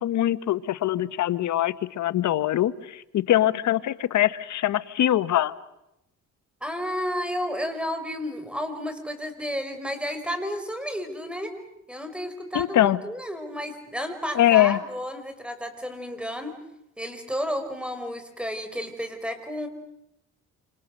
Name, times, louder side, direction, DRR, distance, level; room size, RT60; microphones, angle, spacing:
voice 1, 0.0-5.5 12.5-13.0 14.3-14.8, left 13 dB, 70° left, 1.2 m, -23 dB
voice 2, 6.6-11.5 11.9-16.5 17.0-19.7, equal, 5° right, 5.2 m, -32 dB
28.0 x 27.5 x 6.6 m
cardioid pair, 90°, 30 cm